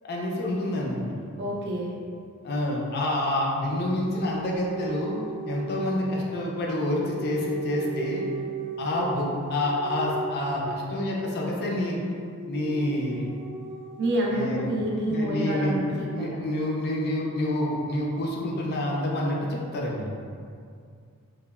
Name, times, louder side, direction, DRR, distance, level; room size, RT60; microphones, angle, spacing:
voice 1, 0.0-1.2 2.4-5.2 5.4-8.2 8.8-12.0 12.5-13.3 14.3-14.8 15.1-15.8 16.1-20.1, left 1 dB, 45° left, -2 dB, 0.4 m, -28 dB
voice 2, 1.4-1.9 14.0-16.4, right 1 dB, 50° right, -3 dB, 0.4 m, -28 dB
sound 1, 4.2-6.2 7.0-15.1, right 4 dB, 90° right, 0.7 m, -38 dB
2.9 x 2.1 x 2.3 m, 2.3 s
head